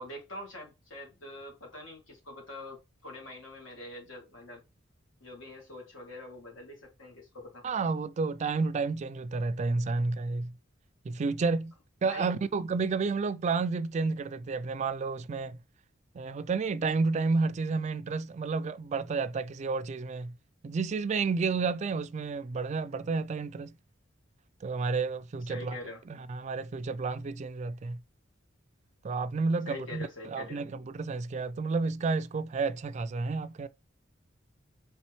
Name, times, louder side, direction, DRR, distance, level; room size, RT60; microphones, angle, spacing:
voice 1, 0.0-4.6 5.2-7.7 12.0-12.3 25.5-26.0 29.7-30.6, left 2 dB, 85° left, 2.3 m, -44 dB
voice 2, 7.6-10.5 11.0-11.7 12.0-15.6 16.1-20.3 20.6-23.8 24.6-25.8 26.1-28.0 29.0-33.7, right 4 dB, 35° right, 0.3 m, -31 dB
4.2 x 3.4 x 3.1 m
head